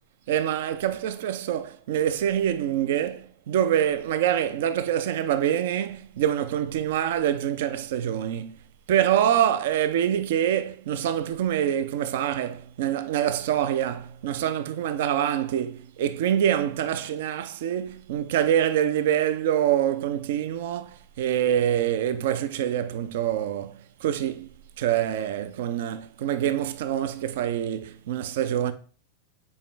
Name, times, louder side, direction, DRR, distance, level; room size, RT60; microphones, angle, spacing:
voice 1, 0.3-8.6 8.9-24.5 24.8-28.7, right 10 dB, 55° right, 0.5 m, -25 dB
7.2 x 4.5 x 3.1 m
figure-of-eight pair, 90°, 0 cm